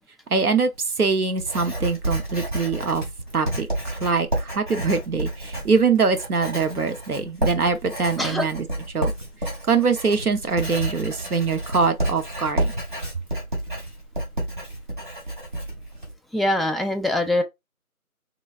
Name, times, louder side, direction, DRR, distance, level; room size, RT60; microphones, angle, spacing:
voice 1, 0.3-0.7 1.0-3.0 3.3-8.7 8.9-9.1 9.7-12.7, right 5 dB, 80° right, 0.8 m, -23 dB
Writing, 0.7-16.1, right 1 dB, 35° right, 1.2 m, -30 dB
voice 2, 16.3-17.4, left 1 dB, ahead, 0.3 m, -23 dB
3.0 x 2.5 x 2.4 m
figure-of-eight pair, 170°, 44 cm